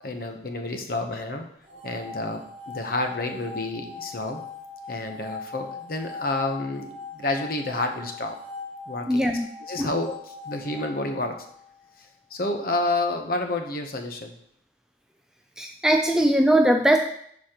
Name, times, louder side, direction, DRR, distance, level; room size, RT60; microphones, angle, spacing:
voice 1, 0.0-1.4 1.8-4.4 4.9-8.4 8.9-9.2 9.7-11.4 12.0-14.3, left 2 dB, 50° left, 5 dB, 0.8 m, -29 dB
sound 1, 1.6-11.8, left 4 dB, 35° right, 1.7 m, -40 dB
voice 2, 9.1-9.5 9.8-9.9 15.6-17.0, right 1 dB, 5° right, 4 dB, 0.3 m, -20 dB
11.5 x 4.1 x 2.9 m, 0.67 s
head